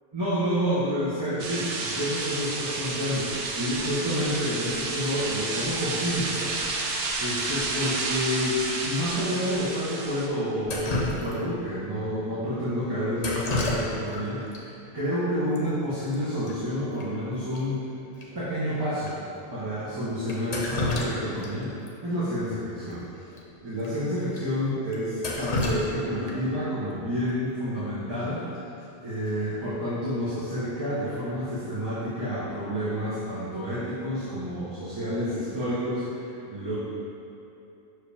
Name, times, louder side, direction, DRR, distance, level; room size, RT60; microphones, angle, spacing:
voice 1, 0.1-6.7 7.2-17.8 18.3-19.2 19.5-21.7 22.0-23.0 23.6-28.5 29.0-36.8, equal, 25° right, -11 dB, 1.0 m, -29 dB
sound 1, 1.4-10.3, right 3 dB, 75° right, 0.9 m, -31 dB
Drip, 10.6-11.6 13.2-14.2 14.5-14.6 15.6-15.7 15.9-16.2 16.5-16.6 17.0-17.1 17.5-17.6 18.2-18.3 19.0-19.1 20.3-21.5 21.9-22.0 23.3-23.4 23.8-23.9 24.4-24.5 24.9-26.6 28.6-28.9 29.3-29.7, left 2 dB, 45° left, 0.8 m, -30 dB
5.8 x 4.8 x 3.5 m, 2.9 s
omnidirectional pair, 1.1 m